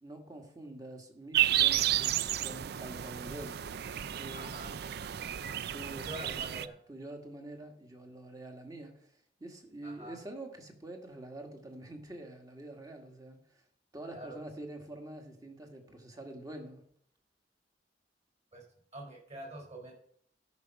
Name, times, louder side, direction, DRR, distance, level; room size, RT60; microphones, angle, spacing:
voice 1, 0.0-3.7 4.2-4.6 5.4-13.6 13.9-16.8, right 1 dB, 20° right, 3 dB, 1.8 m, -46 dB
sound 1, 1.3-6.7, right 12 dB, 60° right, 0.4 m, -32 dB
voice 2, 4.3-4.7 5.9-6.8 9.8-10.2 14.1-14.4 18.5-18.6 18.9-20.0, right 1 dB, 40° right, 0 dB, 5.3 m, -45 dB
13.5 x 5.9 x 5.9 m, 0.68 s
head